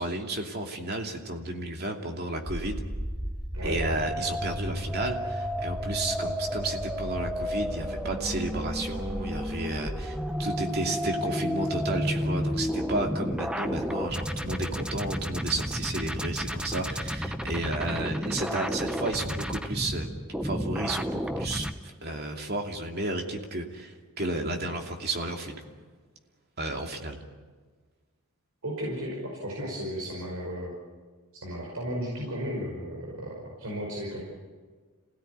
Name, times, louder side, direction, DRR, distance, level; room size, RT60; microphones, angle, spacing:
voice 1, 0.0-2.8 3.6-20.1 20.4-25.6 26.6-27.2, right 2 dB, 45° right, 2 dB, 2.8 m, -32 dB
sound 1, 2.5-21.7, equal, 5° right, 0.9 m, -32 dB
voice 2, 28.6-30.7 31.3-34.2, equal, 75° right, -3 dB, 5.5 m, -34 dB
27.5 x 17.5 x 9.6 m, 1.5 s
head